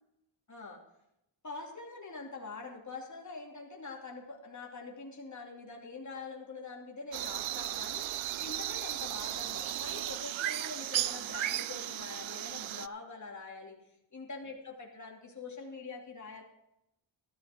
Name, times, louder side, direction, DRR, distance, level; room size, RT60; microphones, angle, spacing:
voice 1, 0.5-0.8 1.4-13.8 14.1-16.4, left 4 dB, 35° left, 0 dB, 3.0 m, -44 dB
sound 1, 7.1-12.9, right 13 dB, 75° right, 0.5 m, -35 dB
13.5 x 13.0 x 3.8 m, 0.82 s
wide cardioid pair, 85°, 48 cm